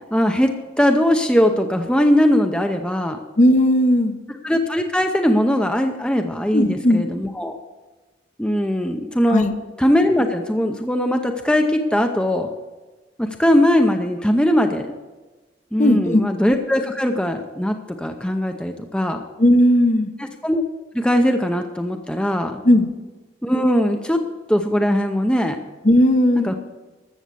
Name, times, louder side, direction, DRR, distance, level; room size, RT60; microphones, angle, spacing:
voice 1, 0.1-0.5 0.8-3.2 4.4-7.6 8.4-9.4 9.8-12.5 13.2-14.9 15.7-19.2 20.2-20.6 20.9-22.6 23.4-24.2 24.5-25.6 26.4-26.5, equal, 5° left, 5 dB, 0.7 m, -20 dB
voice 2, 3.4-4.1 6.5-7.0 9.3-9.5 15.8-16.2 19.4-20.1 22.6-22.9 25.8-26.6, left 1 dB, 45° left, 7 dB, 0.9 m, -16 dB
13.5 x 7.1 x 6.9 m, 1.2 s
head